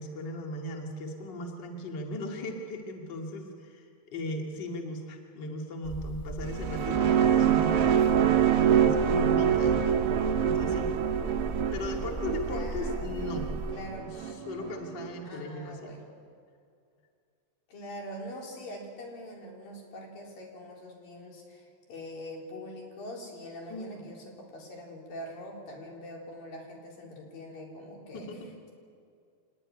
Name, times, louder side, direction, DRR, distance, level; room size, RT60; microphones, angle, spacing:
voice 1, 0.0-8.1 8.6-9.9 10.4-10.9 11.7-13.5 14.0-15.9 23.7-24.2 28.1-28.5, left 1 dB, 35° left, 2 dB, 2.5 m, -38 dB
sound 1, 5.8-13.7, right 2 dB, 5° left, 6.2 m, -37 dB
sound 2, 6.4-15.1, right 9 dB, 65° right, 1.4 m, -26 dB
voice 2, 12.4-13.2 13.7-14.5 15.2-16.0 17.7-28.4, left 1 dB, 70° left, -1 dB, 5.7 m, -43 dB
25.0 x 20.0 x 9.9 m, 2.4 s
omnidirectional pair, 4.2 m